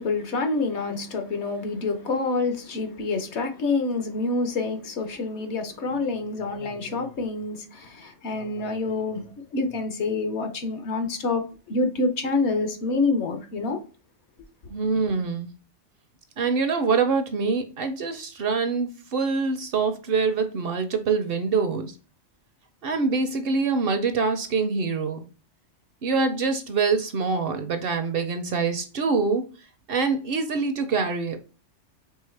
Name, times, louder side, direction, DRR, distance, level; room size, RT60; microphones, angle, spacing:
voice 1, 0.0-13.8, left 3 dB, 70° left, 1.1 m, -27 dB
voice 2, 14.7-15.5 16.4-21.9 22.8-25.2 26.0-29.4 29.9-31.4, right 4 dB, 60° right, 0.7 m, -25 dB
4.6 x 3.1 x 3.2 m
omnidirectional pair, 1.2 m